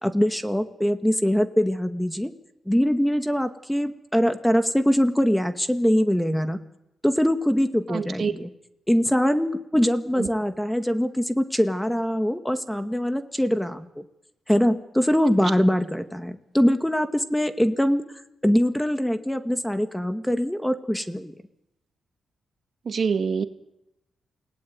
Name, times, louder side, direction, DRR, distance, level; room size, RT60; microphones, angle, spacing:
voice 1, 0.0-2.3 2.7-6.6 7.0-8.5 8.9-14.0 14.5-18.0 18.4-21.3, equal, 5° left, 9 dB, 2.0 m, -23 dB
voice 2, 7.9-8.3 10.2-10.3 15.4-15.5 22.8-23.4, right 6 dB, 55° right, 9 dB, 1.7 m, -25 dB
28.5 x 19.0 x 9.6 m, 0.90 s
cardioid pair, 75°, 0 cm